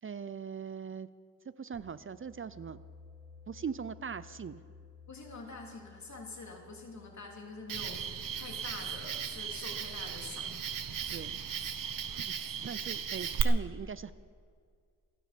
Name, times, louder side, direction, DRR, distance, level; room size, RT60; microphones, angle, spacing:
voice 1, 0.0-1.1 1.6-2.8 3.5-4.6 11.1-11.4 12.2-14.1, right 6 dB, 40° right, 15 dB, 0.5 m, -40 dB
sound 1, 1.7-11.3, left 4 dB, 60° right, 5.7 m, -57 dB
voice 2, 5.1-10.6, left 3 dB, 60° left, 0 dB, 3.1 m, -46 dB
Cricket, 7.7-13.4, right 8 dB, 90° right, 0.9 m, -37 dB
29.0 x 9.6 x 5.1 m, 2.1 s
wide cardioid pair, 110°, 32 cm